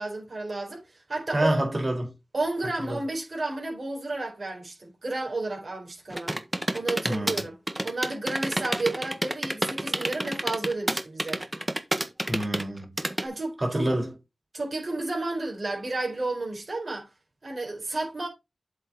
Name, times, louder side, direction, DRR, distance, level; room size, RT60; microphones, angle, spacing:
voice 1, 0.0-1.6 2.3-6.3 6.7-7.5 7.8-11.4 13.2-13.9 14.5-17.1 17.4-18.3, right 2 dB, 60° right, 4.3 m, -32 dB
voice 2, 1.3-2.1 2.8-3.0 7.0-7.4 12.3-13.0 13.6-14.1, right 1 dB, 40° right, 4.7 m, -27 dB
sound 1, 6.1-13.2, right 1 dB, 20° right, 1.4 m, -29 dB
7.7 x 6.4 x 4.2 m
wide cardioid pair, 60°, 0 cm